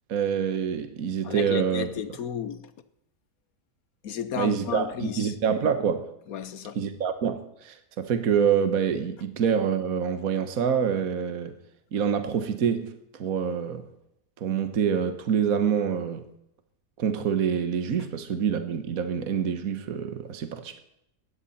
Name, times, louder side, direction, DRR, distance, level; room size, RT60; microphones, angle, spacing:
voice 1, 0.1-1.9 4.4-6.1 6.7-11.6 11.9-12.9 13.2-13.9 14.4-16.2 17.0-20.8, right 7 dB, 60° right, 1.6 m, -26 dB
voice 2, 1.2-2.7 4.0-5.3 6.3-6.8, left 8 dB, 65° left, 1.3 m, -33 dB
18.0 x 13.5 x 4.3 m
omnidirectional pair, 1.8 m